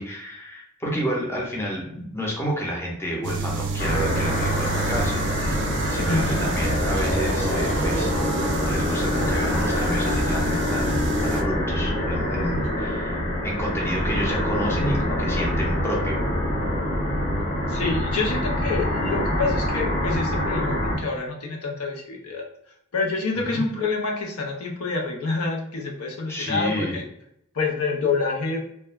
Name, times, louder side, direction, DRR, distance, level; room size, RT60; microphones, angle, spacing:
voice 1, 0.0-8.1 8.6-16.2 23.5-23.6 26.3-26.9, equal, 10° left, -2 dB, 0.6 m, -30 dB
sound 1, 3.2-11.4, right 2 dB, 55° right, 0.4 m, -29 dB
sound 2, 3.8-21.0, left 1 dB, 60° left, 0.9 m, -25 dB
voice 2, 6.1-6.4 17.7-22.5 22.9-27.0 27.5-28.6, left 4 dB, 85° left, 0 dB, 0.6 m, -27 dB
2.3 x 2.2 x 3.1 m, 0.73 s
head